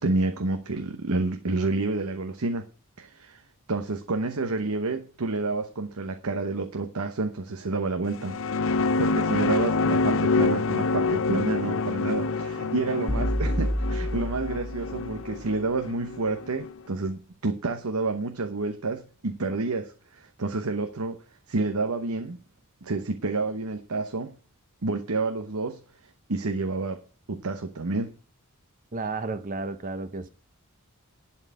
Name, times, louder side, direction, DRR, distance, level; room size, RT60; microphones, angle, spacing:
voice 1, 0.0-2.7 3.0-3.4 3.7-8.4 8.7-21.2 21.5-22.4 22.8-24.3 24.8-25.8 26.3-27.0 27.3-28.1, right 3 dB, 90° right, 0.9 m, -29 dB
sound 1, 8.1-16.7, left 3 dB, 65° left, 0.6 m, -27 dB
sound 2, 13.1-15.3, equal, 5° left, 1.0 m, -29 dB
voice 2, 28.9-30.3, right 3 dB, 40° right, 0.7 m, -32 dB
11.0 x 4.6 x 8.2 m
head